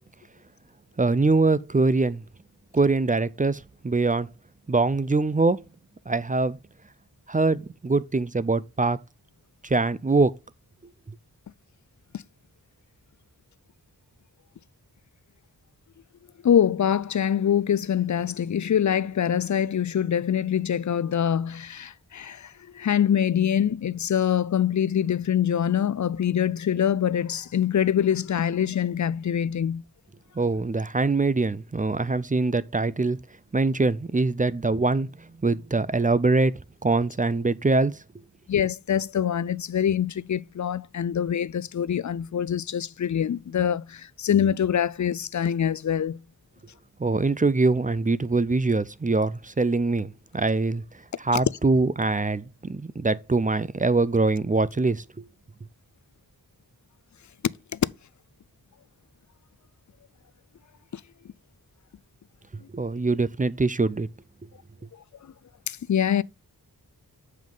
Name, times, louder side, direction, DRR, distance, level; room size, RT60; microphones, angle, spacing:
voice 1, 1.0-2.2 2.7-4.3 4.7-5.7 6.1-6.6 7.3-9.0 9.6-10.3 30.4-33.2 33.5-36.5 36.8-37.9 47.0-50.8 51.2-55.3 62.7-64.1, right 3 dB, 20° right, 0.4 m, -23 dB
voice 2, 16.4-29.8 38.5-46.2 57.7-57.8 65.7-66.2, left 9 dB, 50° left, 0.4 m, -24 dB
7.4 x 5.4 x 3.8 m
wide cardioid pair, 60°, 39 cm